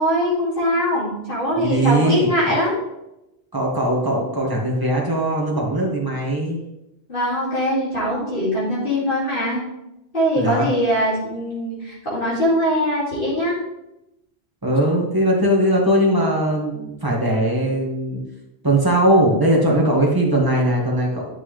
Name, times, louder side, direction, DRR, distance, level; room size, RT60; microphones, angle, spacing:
voice 1, 0.0-2.7 7.1-9.6 10.1-13.6, equal, 60° left, -8 dB, 2.7 m, -22 dB
voice 2, 1.5-2.5 3.5-6.6 10.4-10.7 14.6-18.2 18.6-21.3, right 1 dB, 20° right, -2 dB, 1.9 m, -20 dB
10.5 x 6.1 x 3.3 m, 0.91 s
omnidirectional pair, 1.1 m